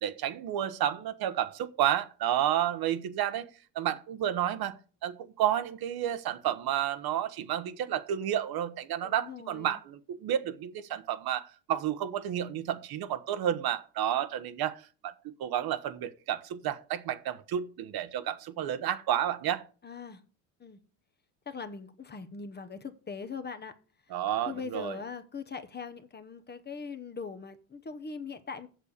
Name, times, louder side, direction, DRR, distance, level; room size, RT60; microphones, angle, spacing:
voice 1, 0.0-3.5 3.7-19.6 24.1-25.0, right 11 dB, 55° right, 1.1 m, -31 dB
voice 2, 9.0-9.8 19.8-20.2 20.6-20.8 21.5-23.7 24.5-28.7, left 5 dB, 20° left, 1.0 m, -41 dB
7.6 x 6.7 x 6.6 m
supercardioid pair, 105°, 45 cm